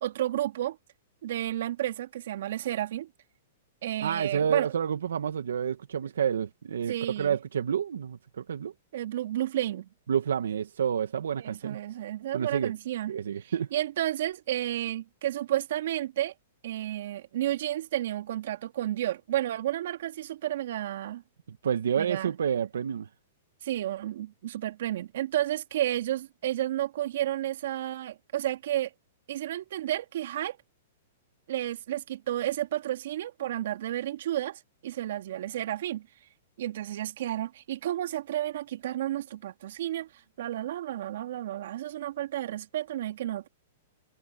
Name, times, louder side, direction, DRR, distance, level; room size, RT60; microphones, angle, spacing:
voice 1, 0.0-0.8 1.2-3.1 3.8-4.7 6.9-7.4 8.9-9.9 11.4-13.2 13.7-16.3 16.6-21.2 22.0-22.3 23.6-28.9 29.3-30.6 31.5-36.1 36.6-40.1 40.4-43.5, right 13 dB, 65° right, 2.4 m, -31 dB
voice 2, 4.0-8.7 10.1-11.8 12.3-12.7 13.1-13.7 21.5-23.1, right 8 dB, 85° right, 1.4 m, -29 dB
hypercardioid pair, 135°, 0 cm